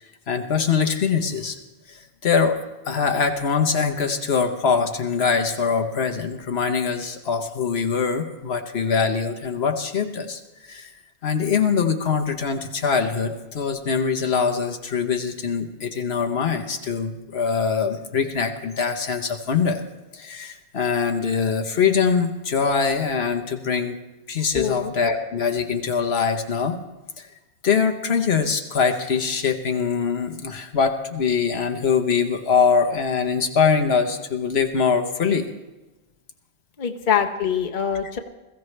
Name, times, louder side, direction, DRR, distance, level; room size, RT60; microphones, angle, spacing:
voice 1, 0.3-1.6 1.9-2.6 2.9-10.9 11.2-19.8 20.1-24.0 24.3-26.8 27.2-27.3 27.6-35.5, left 6 dB, 80° left, 6 dB, 1.3 m, -23 dB
voice 2, 24.5-24.9 36.8-38.2, left 8 dB, 50° left, 4 dB, 1.1 m, -24 dB
21.0 x 15.0 x 3.3 m, 1.1 s
omnidirectional pair, 1.1 m